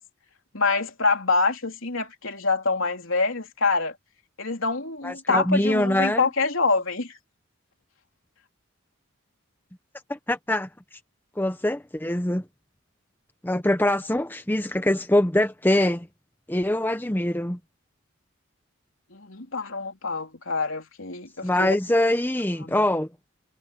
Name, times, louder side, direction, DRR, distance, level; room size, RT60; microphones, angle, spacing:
voice 1, 0.5-4.0 4.4-7.1 19.1-21.7 22.6-22.9, left 3 dB, 70° left, 3.6 m, -26 dB
voice 2, 5.0-6.3 10.1-10.7 11.4-12.4 13.4-16.1 16.5-17.6 21.4-23.1, left 1 dB, 10° left, 0.8 m, -23 dB
head